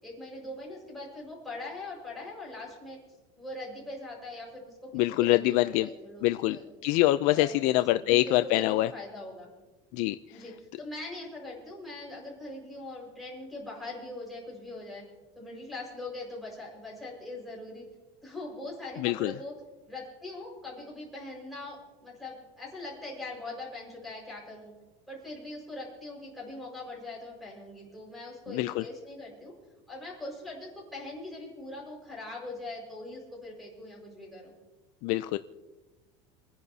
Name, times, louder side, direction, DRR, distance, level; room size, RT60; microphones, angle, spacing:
voice 1, 0.0-3.0 3.4-4.9 5.2-6.7 7.3-7.6 8.0-9.5 10.3-15.0 15.3-17.8 18.2-19.5 19.9-24.7 25.1-29.5 29.9-34.5, left 2 dB, ahead, -3 dB, 4.9 m, -42 dB
voice 2, 4.9-5.9 6.2-6.6 6.8-8.9 9.9-10.2 19.0-19.3 28.5-28.8 35.0-35.4, left 17 dB, 50° left, 12 dB, 0.4 m, -25 dB
30.0 x 10.5 x 2.7 m, 1.3 s
cardioid pair, 170°, 16 cm